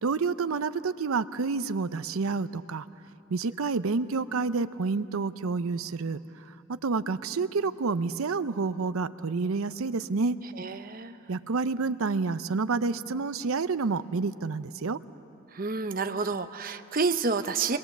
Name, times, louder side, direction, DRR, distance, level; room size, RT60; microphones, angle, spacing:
voice 1, 0.0-2.9 3.3-6.2 6.7-10.4 11.3-15.0, right 4 dB, 85° right, 14 dB, 0.6 m, -29 dB
voice 2, 10.6-11.1 15.5-17.8, right 4 dB, 40° right, 9 dB, 0.8 m, -29 dB
26.5 x 22.0 x 7.3 m, 2.9 s
head